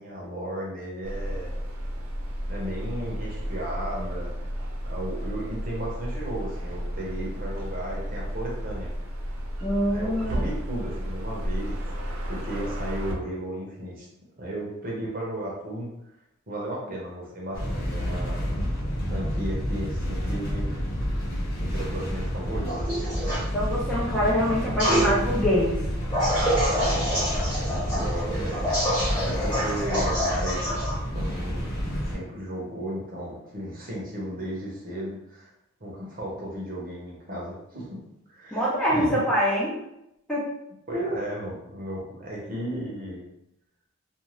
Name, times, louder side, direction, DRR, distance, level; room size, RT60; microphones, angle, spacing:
voice 1, 0.0-1.6 2.5-4.3 4.8-8.9 9.9-14.1 14.4-15.9 16.5-18.4 19.1-20.7 21.6-22.7 26.7-28.7 29.2-30.6 31.1-31.7 32.1-35.5 35.8-38.0 38.3-39.2 40.9-43.2, right 1 dB, 40° right, -4 dB, 0.8 m, -34 dB
sound 1, 1.0-13.1, equal, 80° right, 0.6 m, -32 dB
voice 2, 9.6-10.6 23.5-25.8 38.5-39.7 40.3-40.5, equal, 5° left, -8 dB, 0.5 m, -24 dB
sound 2, 17.5-32.2, equal, 45° left, 0.9 m, -29 dB
sound 3, 22.7-23.4 24.8-25.1 26.1-30.9, equal, 20° left, 1.1 m, -27 dB
2.5 x 2.4 x 3.1 m, 0.83 s
head